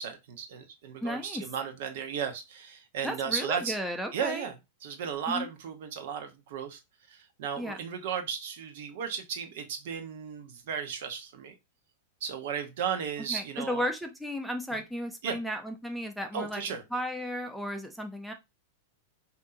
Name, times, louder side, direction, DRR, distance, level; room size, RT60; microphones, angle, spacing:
voice 1, 0.0-3.8 4.1-4.5 4.8-6.8 7.1-11.5 12.2-13.9 14.7-14.8 15.2-15.4 16.3-16.8, right 7 dB, 60° right, 6 dB, 1.0 m, -35 dB
voice 2, 1.0-1.4 3.0-4.5 5.3-5.5 7.6-7.8 13.3-16.6 16.9-18.3, equal, ahead, 4 dB, 0.7 m, -34 dB
5.3 x 2.8 x 2.6 m, 0.22 s
hypercardioid pair, 100°, 0 cm